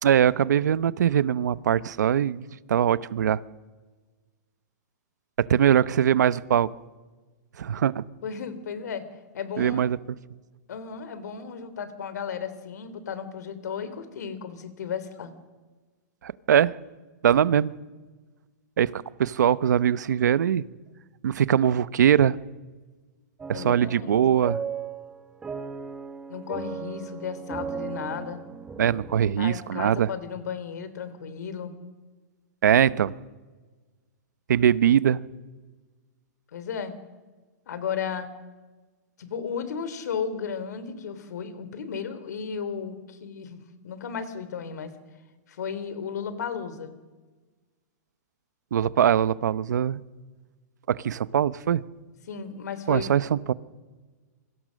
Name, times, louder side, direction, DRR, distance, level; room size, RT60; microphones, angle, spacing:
voice 1, 0.0-3.4 5.4-6.7 7.6-8.0 9.6-10.0 16.2-16.7 17.2-17.7 18.8-20.6 21.2-22.4 23.5-24.6 28.8-30.1 32.6-33.1 34.5-35.2 48.7-50.0 50.9-51.8 52.9-53.5, right 9 dB, 80° right, 17 dB, 0.9 m, -22 dB
voice 2, 8.2-9.1 9.3-9.8 10.7-15.3 23.5-24.2 26.3-28.4 29.4-31.8 36.5-36.9 37.7-38.3 39.2-44.9 45.5-47.0 52.3-53.4, left 7 dB, 75° left, 12 dB, 3.3 m, -34 dB
sound 1, 23.4-29.3, right 6 dB, 10° right, 1.3 m, -36 dB
27.0 x 24.0 x 6.4 m, 1.3 s
hypercardioid pair, 160°, 9 cm